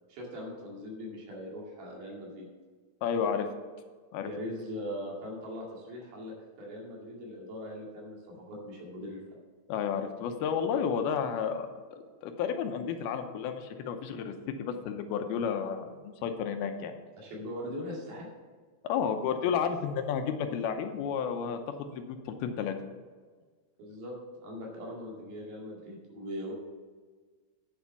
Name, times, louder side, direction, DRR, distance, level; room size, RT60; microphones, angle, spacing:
voice 1, 0.1-2.5 4.2-8.2 8.5-9.2 17.2-18.3 23.8-26.5, equal, 75° right, -2 dB, 4.1 m, -40 dB
voice 2, 3.0-3.5 4.1-4.3 9.7-14.3 14.6-16.9 18.8-22.7, left 7 dB, 85° left, 7 dB, 2.7 m, -32 dB
9.6 x 7.2 x 5.7 m, 1.5 s
omnidirectional pair, 4.4 m